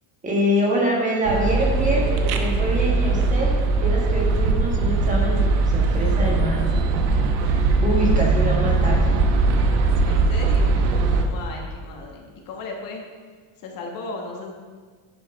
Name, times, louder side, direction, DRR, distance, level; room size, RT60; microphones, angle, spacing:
voice 1, 0.2-3.5 3.8-6.8 7.8-9.2, equal, 15° right, -2 dB, 1.5 m, -25 dB
sound 1, 1.2-11.2, right 3 dB, 90° right, 1.1 m, -20 dB
voice 2, 10.0-10.8 11.2-13.0 13.6-14.5, left 3 dB, 45° left, 1 dB, 1.4 m, -36 dB
10.0 x 5.3 x 5.2 m, 1.5 s
cardioid pair, 160°, 46 cm